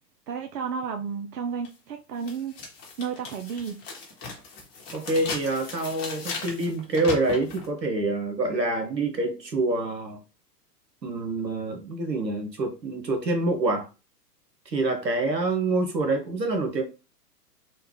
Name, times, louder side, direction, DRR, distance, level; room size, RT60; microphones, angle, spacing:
voice 1, 0.3-2.5 3.0-3.8, right 6 dB, 70° right, 0.6 m, -32 dB
sound 1, 1.6-1.7 2.2-7.7, left 4 dB, 25° left, 0.8 m, -38 dB
voice 2, 4.9-10.2 11.0-13.9 14.7-16.8, right 2 dB, 90° right, 1.0 m, -26 dB
3.2 x 2.1 x 3.3 m
figure-of-eight pair, 110°, 49 cm